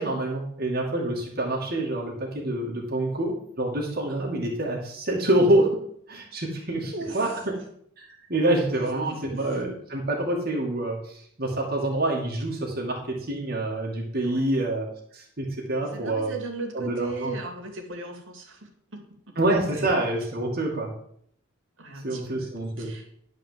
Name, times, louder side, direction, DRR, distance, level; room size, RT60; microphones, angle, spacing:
voice 1, 0.0-5.8 6.1-7.5 8.0-14.9 15.1-16.3 16.7-17.3 19.4-20.9 22.0-22.9, right 1 dB, 45° right, -2 dB, 2.3 m, -26 dB
voice 2, 6.9-7.4 8.7-9.6 14.2-14.6 15.9-19.0 19.7-19.8 21.8-23.1, right 3 dB, 65° right, 2 dB, 2.7 m, -38 dB
11.5 x 4.9 x 7.6 m, 0.67 s
head